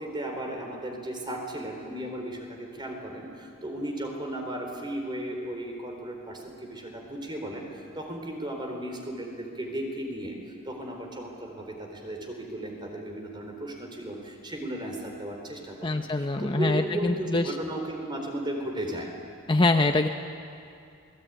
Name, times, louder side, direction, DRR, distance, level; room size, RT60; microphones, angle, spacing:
voice 1, 0.0-10.4 10.6-19.1, right 1 dB, 20° right, 2 dB, 4.1 m, -35 dB
voice 2, 15.8-17.5 19.5-20.1, left 2 dB, 25° left, 5 dB, 0.8 m, -24 dB
27.5 x 20.0 x 9.4 m, 2.4 s
head